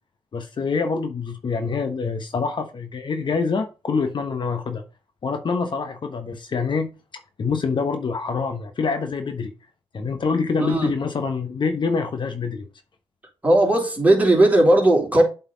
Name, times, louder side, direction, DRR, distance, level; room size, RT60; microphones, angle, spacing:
voice 1, 0.3-4.8 5.2-6.9 7.4-9.5 9.9-12.7, left 5 dB, 45° left, 1.0 m, -25 dB
voice 2, 10.6-10.9 13.4-15.2, right 1 dB, 15° right, 3.5 m, -17 dB
7.9 x 4.1 x 3.9 m
supercardioid pair, 65°, 11 cm